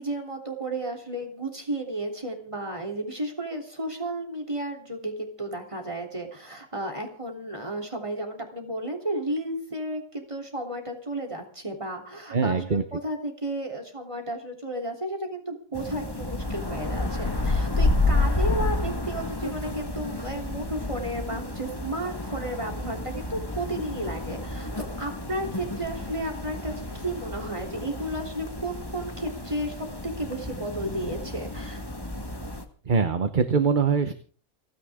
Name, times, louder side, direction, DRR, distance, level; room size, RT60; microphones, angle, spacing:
voice 1, 0.0-31.8, right 1 dB, 20° right, 1 dB, 3.4 m, -33 dB
voice 2, 12.3-12.8 32.9-34.1, right 5 dB, 40° right, 8 dB, 1.0 m, -23 dB
sound 1, 15.7-32.6, left 2 dB, 15° left, 1.6 m, -30 dB
29.0 x 10.0 x 3.7 m, 0.40 s
omnidirectional pair, 1.4 m